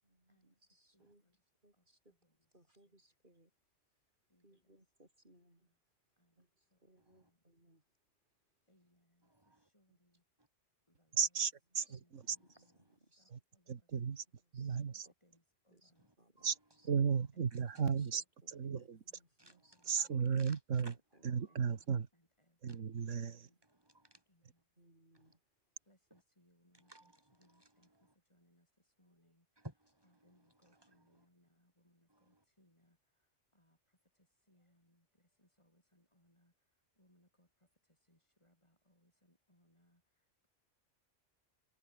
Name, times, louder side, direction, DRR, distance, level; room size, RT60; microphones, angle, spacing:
voice 1, 0.0-1.3 1.6-2.2 2.5-3.5 4.4-5.7 6.4-7.8 9.9-10.0 11.9-12.0 12.6-13.3 14.5-14.8 15.0-15.1 15.7-15.9 16.2-16.5 18.0-19.7 20.3-20.5 21.1-21.6 23.0-23.6 24.8-25.4, right 1 dB, 40° right, 7.0 m, -69 dB
voice 2, 0.9-1.3 2.1-2.3 4.3-4.4 6.2-6.3 6.7-6.8 7.2-7.4 8.7-9.3 9.7-10.2 10.9-11.2 12.0-12.7 13.2-13.9 14.9-16.1 17.3-17.6 18.0-18.1 18.6-19.3 19.5-20.1 21.5-22.8 23.2-23.6 24.3-24.6 25.9-27.1 27.4-27.9 28.3-28.7 29.0-29.4 30.0-33.0 33.5-33.8 34.5-35.1 35.4-36.5 37.0-37.5 38.1-40.0, equal, 25° left, 7.7 m, -73 dB
voice 3, 7.0-7.3 9.2-9.7 10.4-10.5 12.8-13.0 16.0-16.1 16.4-16.5 17.5-17.6 19.4-20.1 20.3-20.9 22.7-22.8 23.7-24.2 25.1-25.4 26.7-28.1 29.6-30.1 30.6-31.2 32.1-32.4, right 1 dB, 20° right, 3.4 m, -59 dB
voice 4, 11.1-12.4 13.3-13.4 13.7-14.2 14.5-15.1 16.4-16.6 16.8-19.0 19.9-20.9 21.2-22.1 22.6-23.5, right 6 dB, 85° right, 1.8 m, -35 dB
omnidirectional pair, 1.2 m